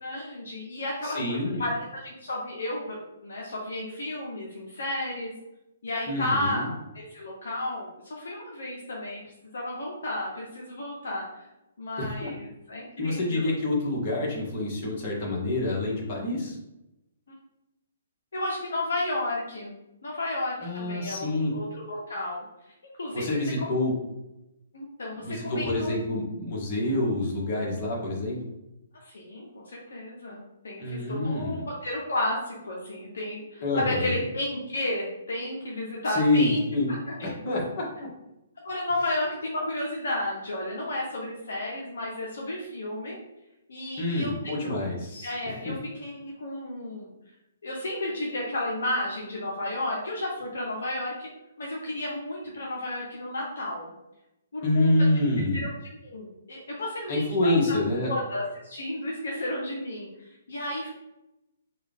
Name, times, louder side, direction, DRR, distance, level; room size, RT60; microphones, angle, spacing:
voice 1, 0.0-5.3 5.8-9.2 9.5-11.4 11.8-13.5 18.3-19.8 20.0-22.4 23.0-23.7 24.7-25.9 28.9-36.6 36.9-37.3 38.6-43.2 43.7-44.3 44.6-44.8 45.2-47.1 47.6-51.3 51.6-53.9 54.5-55.1 55.6-55.7 56.0-57.6 58.0-60.9, left 1 dB, 75° left, -2 dB, 0.8 m, -32 dB
voice 2, 1.0-1.6 6.1-6.7 12.0-12.3 13.0-16.6 20.6-21.5 23.1-23.9 25.2-28.4 30.8-31.6 33.6-34.2 36.1-36.9 37.2-38.1 44.0-45.3 54.6-55.6 57.1-58.1, left 2 dB, 45° left, -3 dB, 1.4 m, -27 dB
3.5 x 2.4 x 3.5 m, 0.93 s
hypercardioid pair, 135°, 0 cm